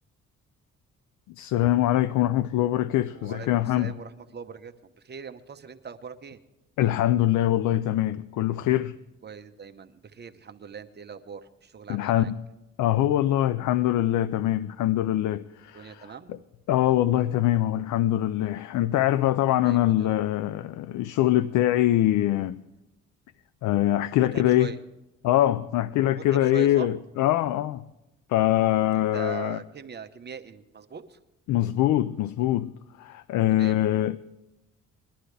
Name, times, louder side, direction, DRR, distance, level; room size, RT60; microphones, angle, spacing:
voice 1, 1.4-3.9 6.8-9.0 11.9-12.4 12.8-16.1 16.7-22.6 23.6-24.8 25.2-27.8 28.3-29.6 31.5-32.7 33.0-34.2, left 13 dB, 80° left, 0.5 m, -23 dB
voice 2, 3.1-6.4 9.2-12.3 15.7-16.4 19.6-20.2 24.2-24.8 26.1-26.9 29.1-31.2 33.5-34.0, right 6 dB, 35° right, 1.0 m, -41 dB
21.0 x 11.5 x 3.3 m
cardioid pair, 90°, 30 cm